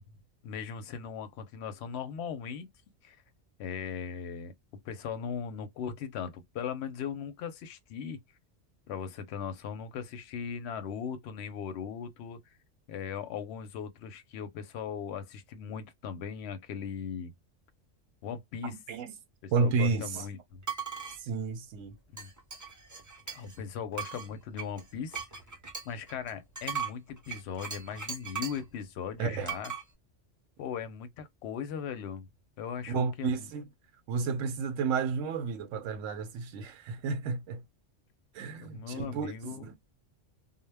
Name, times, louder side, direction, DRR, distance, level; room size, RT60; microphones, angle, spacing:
voice 1, 0.4-2.7 3.0-3.2 3.6-4.5 4.8-8.2 8.9-12.5 12.9-17.3 18.2-18.8 19.4-20.6 22.1-22.3 23.3-25.2 25.9-29.7 30.6-32.3 32.6-33.5 38.6-39.6, left 7 dB, 65° left, 0.8 m, -38 dB
voice 2, 18.6-19.1 19.5-20.3 21.2-22.0 29.2-29.5 32.9-33.7 34.1-37.6 38.3-39.8, right 5 dB, 85° right, 0.9 m, -32 dB
sound 1, 20.6-21.2 22.2-23.6 23.9-28.7 29.5-29.8, right 6 dB, 25° right, 0.4 m, -38 dB
2.1 x 2.0 x 3.2 m
omnidirectional pair, 1.3 m